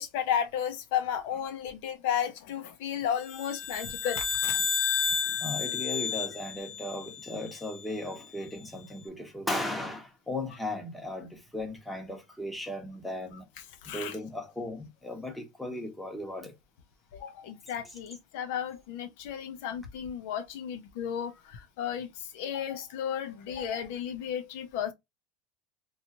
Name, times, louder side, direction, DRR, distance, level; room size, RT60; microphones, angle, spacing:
voice 1, 0.0-4.6 13.8-14.2 17.1-24.9, left 9 dB, 75° left, 0.6 m, -33 dB
sound 1, 3.3-7.8, left 6 dB, 45° left, 0.9 m, -31 dB
voice 2, 5.2-13.5 13.8-16.5, left 1 dB, 5° left, 0.9 m, -36 dB
2.9 x 2.4 x 2.7 m
supercardioid pair, 115°, 0 cm